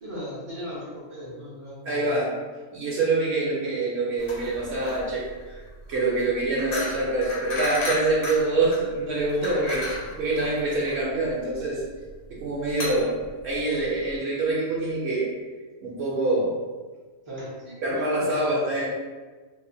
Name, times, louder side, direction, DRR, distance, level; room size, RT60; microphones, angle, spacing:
voice 1, 0.0-2.2 17.3-18.5, equal, 45° right, -8 dB, 0.4 m, -38 dB
voice 2, 1.8-2.3 2.7-5.6 5.9-9.9 10.2-11.8 12.3-15.3 15.8-16.5 17.8-18.9, right 2 dB, 65° right, -5 dB, 0.8 m, -25 dB
sound 1, 4.2-14.2, left 1 dB, 75° left, 1.1 m, -35 dB
2.6 x 2.1 x 2.6 m, 1.4 s
omnidirectional pair, 1.3 m